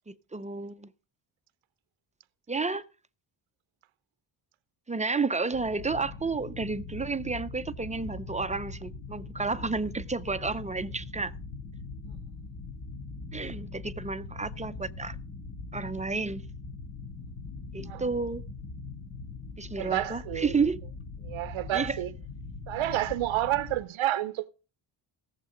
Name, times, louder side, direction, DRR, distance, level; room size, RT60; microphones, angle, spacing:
voice 1, 0.1-0.9 2.5-2.8 4.9-11.3 13.3-15.2 15.7-16.4 17.7-18.4 19.6-20.8 21.7-22.0, right 4 dB, 15° right, 0.5 m, -31 dB
sound 1, 5.5-23.8, left 3 dB, 70° left, 3.5 m, -41 dB
voice 2, 19.8-20.5 21.2-22.1 22.7-24.5, right 14 dB, 85° right, 0.8 m, -29 dB
17.5 x 7.4 x 3.8 m
wide cardioid pair, 145°, 47 cm